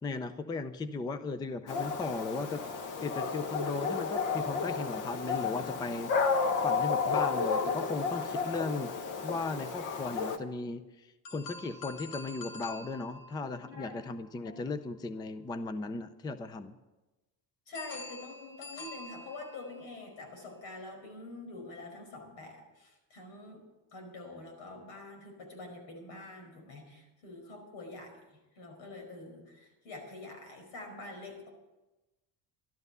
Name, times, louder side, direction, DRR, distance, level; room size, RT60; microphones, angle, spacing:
voice 1, 0.0-2.6 3.0-6.1 6.6-8.9 9.2-16.8, left 3 dB, 10° left, 12 dB, 0.4 m, -37 dB
Dog, 1.7-10.4, left 5 dB, 55° left, 1.3 m, -32 dB
sound 1, 11.2-15.3 17.7-20.1, left 2 dB, 70° left, 2.2 m, -47 dB
voice 2, 13.6-14.0 14.4-14.6 17.7-23.6 23.9-28.1 28.5-31.5, left 2 dB, 90° left, 4 dB, 5.0 m, -46 dB
13.0 x 12.0 x 6.8 m, 1.1 s
cardioid pair, 160°, 38 cm